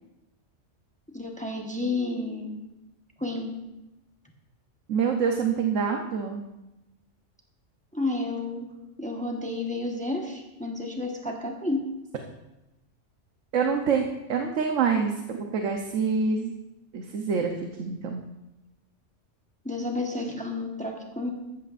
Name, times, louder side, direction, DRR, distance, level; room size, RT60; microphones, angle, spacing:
voice 1, 1.1-2.5 3.2-3.5 7.9-8.7 9.0-11.8 19.6-21.3, left 2 dB, 5° left, 1 dB, 1.1 m, -31 dB
voice 2, 4.9-6.4 13.5-16.5 16.9-17.5 17.8-18.3, right 6 dB, 80° right, 3 dB, 1.2 m, -26 dB
14.5 x 12.5 x 2.5 m, 0.98 s
omnidirectional pair, 1.3 m